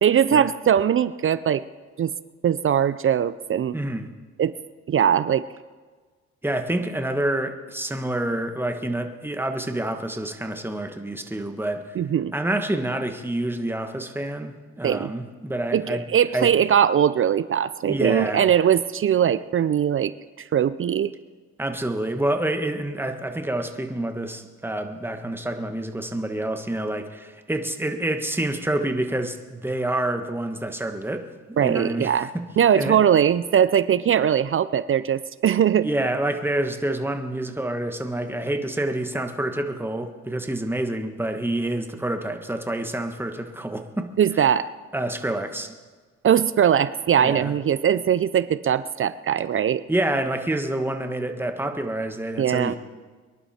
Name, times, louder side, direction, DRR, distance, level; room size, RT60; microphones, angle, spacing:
voice 1, 0.0-1.6 2.0-2.1 2.4-3.8 4.4-4.5 4.9-5.5 12.0-12.3 14.8-15.1 15.7-21.1 31.6-32.3 32.6-35.9 44.2-44.7 46.2-49.8 52.4-52.7, right 9 dB, 45° right, 15 dB, 0.5 m, -21 dB
voice 2, 3.7-4.1 6.4-12.0 12.3-16.0 16.3-16.5 17.9-18.4 21.6-32.4 32.7-33.0 35.8-44.1 44.9-45.7 47.2-47.5 49.9-52.8, right 1 dB, 5° right, 6 dB, 1.5 m, -27 dB
24.0 x 11.0 x 4.4 m, 1.4 s
cardioid pair, 90°, 30 cm